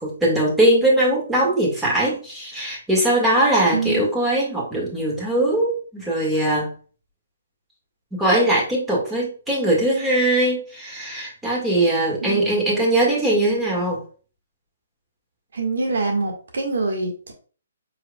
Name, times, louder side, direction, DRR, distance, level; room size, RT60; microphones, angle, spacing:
voice 1, 0.0-6.7 8.1-14.0, right 1 dB, 5° right, -4 dB, 1.9 m, -20 dB
voice 2, 3.7-4.1 12.2-12.4 15.5-17.3, right 3 dB, 70° right, 2 dB, 1.7 m, -25 dB
5.0 x 4.4 x 2.3 m, 0.39 s
hypercardioid pair, 145°, 0 cm